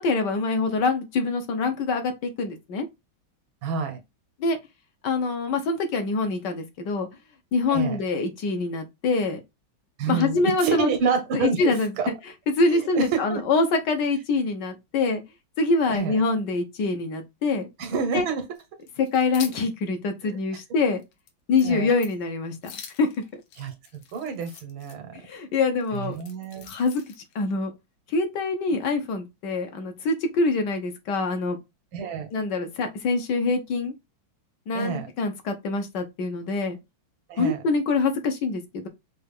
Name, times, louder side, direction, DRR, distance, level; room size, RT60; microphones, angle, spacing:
voice 1, 0.0-2.8 4.4-4.6 5.0-7.1 7.5-9.4 10.1-10.9 11.3-12.1 12.6-15.2 15.6-17.7 18.1-18.3 19.0-21.0 21.5-22.5 23.0-23.4 25.1-26.2 26.7-27.0 27.3-27.7 28.1-31.6 32.3-33.9 34.7-36.8 37.4-38.9, left 3 dB, 65° left, 1.3 m, -25 dB
voice 2, 3.6-4.0 7.7-8.0 10.0-12.1 12.7-13.4 15.9-16.2 17.8-18.4 20.2-20.4 21.6-21.9 23.6-23.7 24.1-25.1 25.9-26.7 31.9-32.3 34.7-35.1 37.3-37.6, right 5 dB, 80° right, 1.8 m, -28 dB
sound 1, 18.6-19.7 20.1-20.2 20.6-20.7 21.0-21.3 21.6-21.7 22.0-22.2 22.6-25.0 25.8-27.3, left 8 dB, 90° left, 1.6 m, -43 dB
5.5 x 2.4 x 3.4 m
omnidirectional pair, 2.1 m